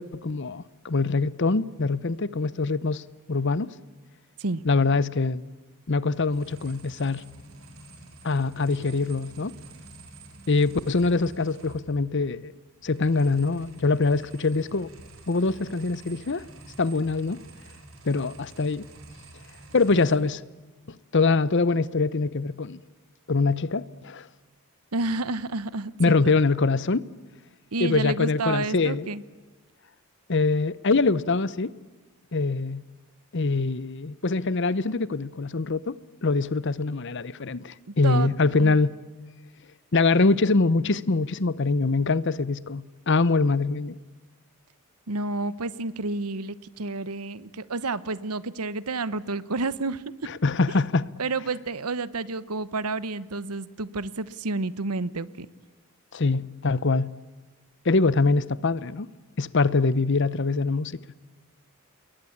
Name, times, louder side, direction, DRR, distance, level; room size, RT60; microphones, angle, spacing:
voice 1, 0.0-3.0 3.3-3.7 4.6-5.4 5.9-7.2 8.2-9.5 10.5-12.5 12.8-14.9 15.3-16.4 16.8-17.4 18.1-18.8 19.7-20.4 21.1-22.8 23.3-24.3 26.0-27.0 27.8-29.1 30.3-31.7 32.3-32.8 33.3-36.0 36.2-38.9 39.9-43.9 50.3-51.1 56.1-57.1 57.8-59.1 59.4-61.0, left 3 dB, 55° left, 0.8 m, -24 dB
sound 1, 6.1-12.2 12.5-20.2, right 2 dB, 65° right, 5.1 m, -48 dB
voice 2, 24.9-26.3 27.7-29.2 38.0-38.3 38.6-38.7 45.1-50.0 51.2-55.5, right 3 dB, 85° right, 1.0 m, -30 dB
29.0 x 22.0 x 8.6 m
head